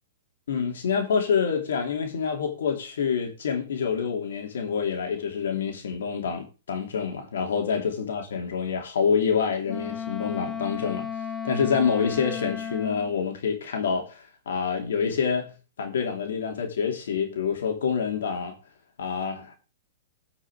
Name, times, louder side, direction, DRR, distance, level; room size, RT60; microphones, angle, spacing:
voice 1, 0.5-11.1 11.4-18.5 19.0-19.5, left 6 dB, 80° left, 2.9 m, -27 dB
Wind instrument woodwind instrument, 9.6-13.1, left 7 dB, 10° left, 1.2 m, -34 dB
12.5 x 6.1 x 4.8 m
hypercardioid pair, 150°, 0 cm